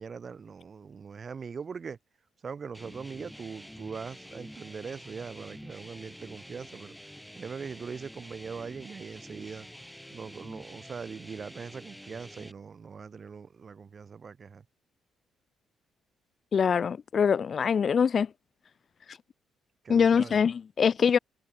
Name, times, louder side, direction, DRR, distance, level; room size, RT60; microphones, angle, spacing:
voice 1, 0.0-2.0 2.4-7.0 7.4-9.7 10.1-14.6 19.8-20.4, right 5 dB, 40° right, 3.0 m, -41 dB
sound 1, 2.7-12.5, equal, ahead, 3.5 m, -48 dB
voice 2, 16.5-18.3 19.9-21.2, left 6 dB, 50° left, 0.4 m, -23 dB
cardioid pair, 90°, 0 cm